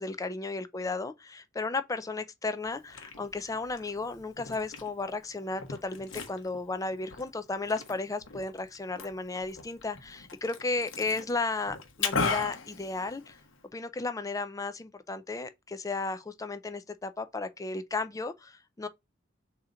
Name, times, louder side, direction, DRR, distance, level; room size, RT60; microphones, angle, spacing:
voice 1, 0.0-13.4 13.7-18.9, left 3 dB, 20° left, 0.4 m, -34 dB
Liquid, 2.6-13.6, left 4 dB, 85° left, 0.9 m, -38 dB
3.8 x 2.8 x 4.8 m
head